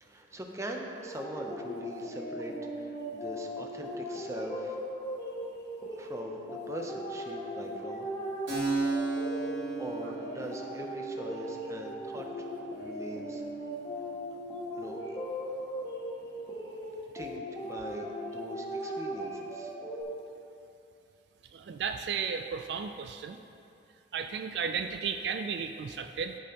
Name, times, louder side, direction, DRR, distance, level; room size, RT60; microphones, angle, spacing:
voice 1, 0.0-4.8 6.0-8.1 9.8-12.5 12.8-13.4 14.8-15.0 17.1-19.7, right 1 dB, 15° right, 1 dB, 0.6 m, -42 dB
sound 1, 1.0-20.0, equal, 20° left, 1.1 m, -38 dB
Keyboard (musical), 8.5-15.8, right 3 dB, 90° right, 1.9 m, -37 dB
voice 2, 21.5-23.4 24.1-26.4, right 6 dB, 60° right, 7 dB, 0.3 m, -34 dB
13.5 x 5.3 x 2.9 m, 2.7 s
head